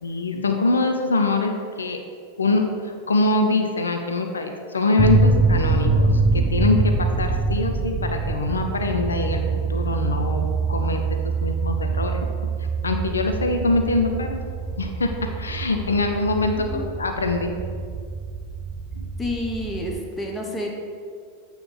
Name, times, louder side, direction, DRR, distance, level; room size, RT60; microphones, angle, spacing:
voice 1, 0.0-1.5 1.8-2.0 2.4-10.4 10.7-12.3 12.8-17.5 18.9-19.1, left 3 dB, 75° left, 5 dB, 0.5 m, -24 dB
sound 1, 5.0-20.0, right 4 dB, 25° right, 0.3 m, -24 dB
voice 2, 16.6-16.9 19.2-20.8, left 1 dB, 15° left, 0 dB, 0.9 m, -29 dB
8.6 x 3.1 x 5.0 m, 2.1 s
figure-of-eight pair, 90°, 0 cm